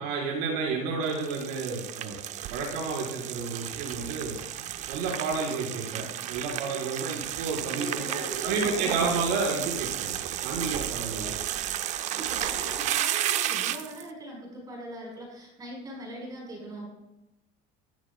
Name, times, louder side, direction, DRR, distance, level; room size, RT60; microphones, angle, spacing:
voice 1, 0.0-2.2 2.5-4.4 4.9-11.3, right 4 dB, 75° right, -3 dB, 4.7 m, -31 dB
sound 1, 1.0-14.0, right 11 dB, 40° right, 0.6 m, -32 dB
voice 2, 7.7-9.1 12.0-16.9, right 1 dB, 20° right, -2 dB, 5.1 m, -40 dB
17.5 x 12.5 x 2.3 m, 0.96 s
cardioid pair, 155°, 18 cm